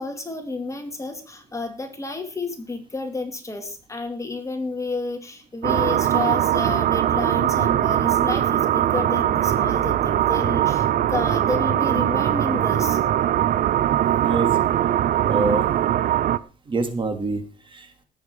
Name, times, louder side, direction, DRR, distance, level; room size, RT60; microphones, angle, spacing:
voice 1, 0.0-13.0, left 3 dB, 15° left, 6 dB, 2.2 m, -30 dB
sound 1, 5.6-16.4, right 11 dB, 55° right, 0.7 m, -21 dB
voice 2, 14.2-14.5 15.3-15.7 16.7-18.0, right 3 dB, 30° right, 7 dB, 2.6 m, -26 dB
18.5 x 8.0 x 4.8 m, 0.36 s
cardioid pair, 110°, 17 cm